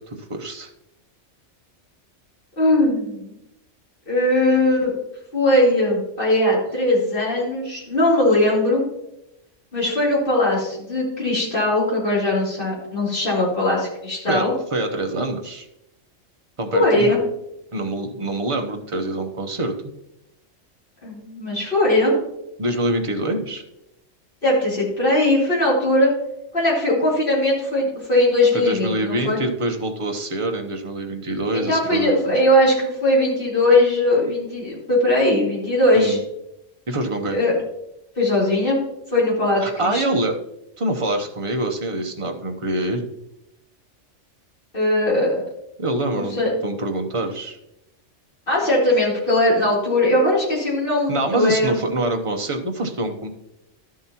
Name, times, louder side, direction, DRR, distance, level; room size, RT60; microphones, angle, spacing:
voice 1, 0.3-0.7 14.3-14.4 14.7-15.7 16.6-17.2 17.7-19.9 22.6-23.6 28.5-32.1 35.9-36.2 36.9-37.4 39.6-40.3 40.8-43.1 45.8-47.6 51.1-53.3, right 1 dB, 30° right, 4 dB, 0.8 m, -25 dB
voice 2, 2.6-3.3 4.1-4.9 5.3-8.9 9.7-14.5 16.7-17.2 21.0-22.2 24.4-26.1 26.5-29.4 31.5-36.2 37.3-37.5 38.2-38.8 39.1-40.0 44.7-45.4 46.1-46.5 48.5-51.8, left 1 dB, 45° left, -6 dB, 3.4 m, -19 dB
12.5 x 7.4 x 2.9 m, 0.86 s
omnidirectional pair, 1.3 m